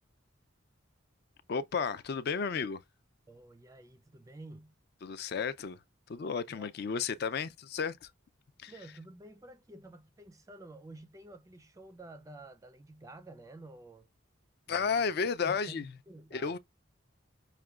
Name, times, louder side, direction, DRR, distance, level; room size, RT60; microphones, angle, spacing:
voice 1, 1.5-2.8 5.0-5.8 6.1-8.1 8.6-8.7 14.7-15.9 16.3-16.6, left 5 dB, 50° left, 0.4 m, -33 dB
voice 2, 3.3-4.8 6.5-6.7 8.7-14.1 14.7-15.1 15.4-16.6, right 2 dB, 15° right, 0.3 m, -51 dB
5.7 x 2.2 x 2.3 m
head